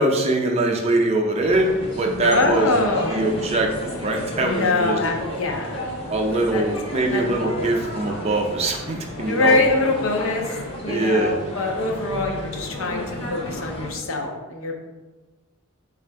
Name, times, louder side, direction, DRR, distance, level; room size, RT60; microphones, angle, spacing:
voice 1, 0.0-5.0 6.1-9.6 10.9-11.4, right 2 dB, 30° right, 2 dB, 0.4 m, -22 dB
sound 1, 1.4-13.9, left 1 dB, 25° left, 0.7 m, -33 dB
voice 2, 2.2-3.2 4.4-5.9 6.5-6.6 7.1-7.2 7.6-7.7 9.3-13.0 13.3-14.7, left 2 dB, 70° left, 2 dB, 0.6 m, -23 dB
4.1 x 2.4 x 4.5 m, 1.2 s
head